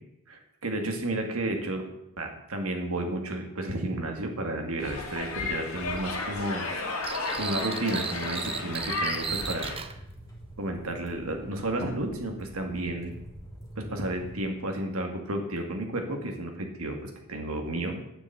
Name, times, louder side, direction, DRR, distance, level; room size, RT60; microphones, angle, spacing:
voice 1, 0.3-1.8 2.2-9.7 10.6-13.1 13.8-18.0, right 1 dB, 70° right, 3 dB, 2.1 m, -32 dB
sound 1, 4.8-9.8, left 3 dB, 70° left, 2.3 m, -33 dB
sound 2, 7.0-9.9, right 6 dB, 25° right, 0.7 m, -35 dB
sound 3, 8.1-14.5, equal, 15° left, 3.2 m, -46 dB
9.2 x 7.3 x 8.0 m, 0.85 s
head